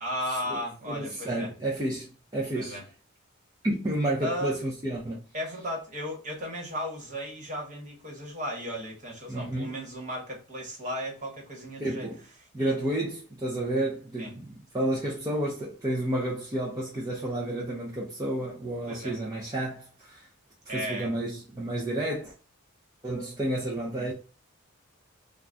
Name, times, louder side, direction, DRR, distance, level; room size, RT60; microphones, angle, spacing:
voice 1, 0.0-1.5 2.5-2.8 4.2-4.6 5.3-12.1 12.6-12.8 14.2-14.3 18.9-19.2 20.7-21.1 23.9-24.1, equal, 35° right, 1.2 m, -35 dB
voice 2, 0.9-2.8 3.6-5.2 9.3-9.7 11.8-12.2 12.5-20.3 20.7-22.3 23.0-24.1, right 1 dB, 15° right, 0.5 m, -31 dB
2.6 x 2.3 x 3.3 m
head